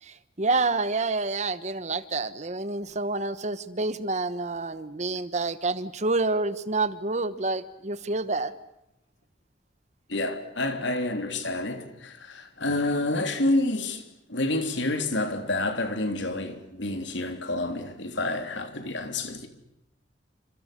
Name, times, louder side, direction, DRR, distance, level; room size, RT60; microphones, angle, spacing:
voice 1, 0.0-8.5, right 3 dB, 40° right, 1.2 m, -28 dB
voice 2, 10.1-14.0 14.3-19.5, left 2 dB, 80° left, 3.3 m, -28 dB
29.5 x 26.5 x 6.8 m
head